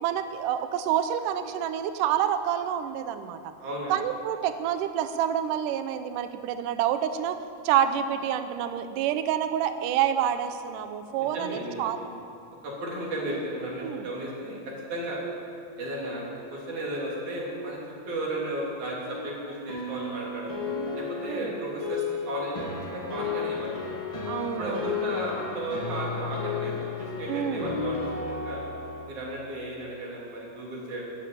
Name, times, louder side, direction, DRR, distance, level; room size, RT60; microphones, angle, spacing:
voice 1, 0.0-3.4 3.9-7.4 7.6-12.0 13.8-14.1 21.3-21.5 24.3-24.9 27.3-27.8, right 10 dB, 90° right, 9 dB, 1.9 m, -28 dB
voice 2, 3.6-3.9 11.2-12.0 12.6-14.6 14.9-15.2 15.8-16.3 16.5-17.8 18.1-20.5 20.9-22.7 22.9-23.8 24.6-26.7 27.0-28.6 29.1-31.0, right 1 dB, 50° right, -4 dB, 4.5 m, -34 dB
sound 1, 19.0-29.1, left 5 dB, 25° left, 0.6 m, -33 dB
13.5 x 12.0 x 8.8 m, 2.5 s
omnidirectional pair, 4.7 m